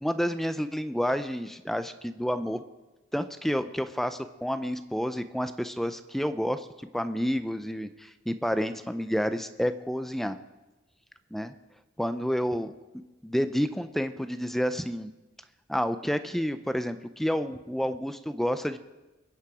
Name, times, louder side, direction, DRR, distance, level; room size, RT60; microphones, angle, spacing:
voice 1, 0.0-2.6 3.1-10.4 11.3-11.5 12.0-12.7 13.2-15.1 15.7-18.8, equal, ahead, 10 dB, 0.5 m, -29 dB
22.5 x 8.7 x 4.9 m, 1.1 s
head